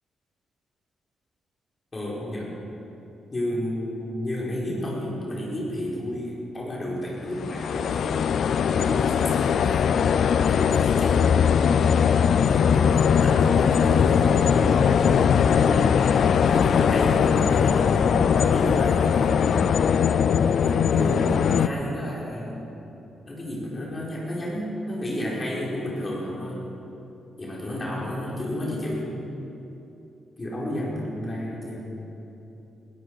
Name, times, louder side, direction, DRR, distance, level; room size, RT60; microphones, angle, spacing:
voice 1, 1.9-2.6 3.3-9.9 10.5-11.5 12.4-16.0 16.4-19.7 20.6-22.6 23.3-26.7 27.4-29.1 30.4-32.1, left 1 dB, 35° left, -5 dB, 4.6 m, -31 dB
sound 1, 7.3-21.7, left 7 dB, 70° left, 0.5 m, -20 dB
20.5 x 13.0 x 4.8 m, 2.9 s
cardioid pair, 70°, 0 cm